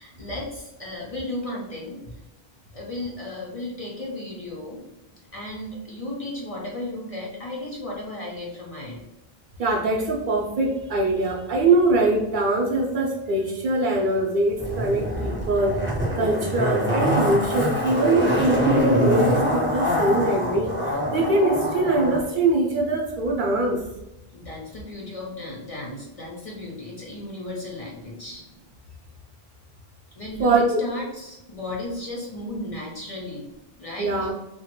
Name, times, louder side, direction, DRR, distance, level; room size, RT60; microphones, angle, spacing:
voice 1, 0.0-2.2 2.7-4.8 5.3-9.0 24.3-28.4 30.2-33.5 33.8-34.3, left 1 dB, 45° left, -4 dB, 0.5 m, -34 dB
voice 2, 9.6-15.8 16.1-23.8 30.4-30.8 34.0-34.3, right 2 dB, 60° right, 0 dB, 0.6 m, -22 dB
Zipper (clothing), 14.6-22.2 22.5-22.6, equal, 15° right, 0.6 m, -24 dB
2.9 x 2.2 x 2.9 m, 0.96 s
omnidirectional pair, 1.0 m